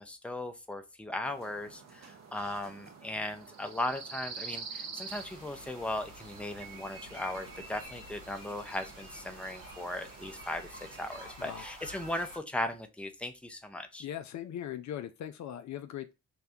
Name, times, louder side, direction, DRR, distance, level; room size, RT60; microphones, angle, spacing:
voice 1, 0.0-14.0, left 1 dB, 5° left, 0.6 m, -37 dB
sound 1, 1.2-11.3, right 5 dB, 50° right, 0.8 m, -48 dB
sound 2, 5.1-12.4, right 1 dB, 70° right, 1.4 m, -49 dB
voice 2, 14.0-16.1, left 11 dB, 60° left, 0.4 m, -39 dB
2.8 x 2.2 x 3.4 m
hypercardioid pair, 40°, 34 cm